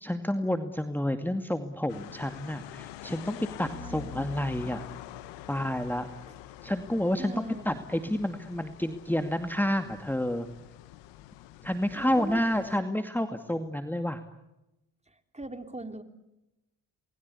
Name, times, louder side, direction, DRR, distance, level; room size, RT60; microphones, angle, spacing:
voice 1, 0.0-4.8 5.5-6.1 6.6-10.5 11.6-14.2, left 1 dB, 5° left, 7 dB, 2.2 m, -29 dB
sound 1, 1.9-12.8, left 13 dB, 85° left, 1.1 m, -46 dB
voice 2, 3.7-4.2 7.2-7.7 11.9-12.4 15.1-16.0, right 2 dB, 15° right, 7 dB, 3.6 m, -40 dB
29.0 x 21.0 x 8.4 m, 0.94 s
hypercardioid pair, 45°, 42 cm